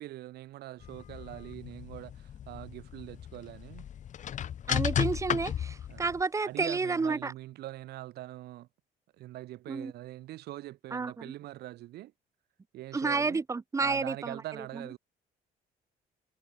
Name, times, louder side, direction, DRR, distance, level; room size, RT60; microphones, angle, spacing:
voice 1, 0.0-3.8 5.9-6.1 6.5-8.7 9.2-12.1 12.7-13.4 13.8-15.0, right 15 dB, 70° right, 1.1 m, -43 dB
sound 1, 0.8-6.2, left 9 dB, 45° left, 1.1 m, -35 dB
voice 2, 4.7-7.3 9.7-9.9 10.9-11.3 12.9-14.4 14.7-14.8, right 4 dB, 20° right, 0.6 m, -30 dB
cardioid pair, 110°, 17 cm